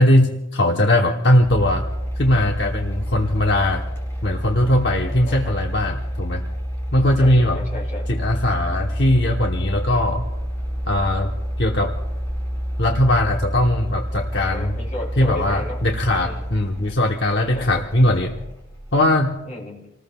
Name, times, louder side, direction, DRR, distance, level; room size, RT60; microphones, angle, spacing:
voice 1, 0.0-1.9 2.2-3.8 4.2-6.4 6.9-7.6 8.1-10.3 10.9-11.3 11.6-12.0 12.8-14.8 15.2-18.4 18.9-19.4, left 1 dB, 60° left, 2 dB, 1.0 m, -19 dB
sound 1, 1.4-19.2, equal, 15° left, 3.6 m, -28 dB
voice 2, 7.2-8.1 14.3-15.8 16.2-16.5 17.5-17.8 19.4-19.9, left 1 dB, 40° left, -2 dB, 3.2 m, -34 dB
28.0 x 19.5 x 2.3 m, 0.98 s
head